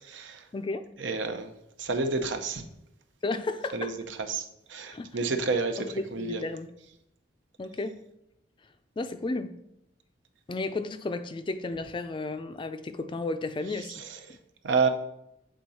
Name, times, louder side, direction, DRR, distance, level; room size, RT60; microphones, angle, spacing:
voice 1, 0.0-0.5 1.0-1.5 1.8-2.6 3.7-6.4 13.9-14.4 14.6-14.9, right 4 dB, 90° right, 0.7 m, -30 dB
voice 2, 0.5-0.9 3.2-3.9 4.9-5.1 5.8-6.7 7.6-8.0 9.0-9.6 10.5-14.0, left 3 dB, 25° left, 0.4 m, -33 dB
7.8 x 3.7 x 4.2 m
head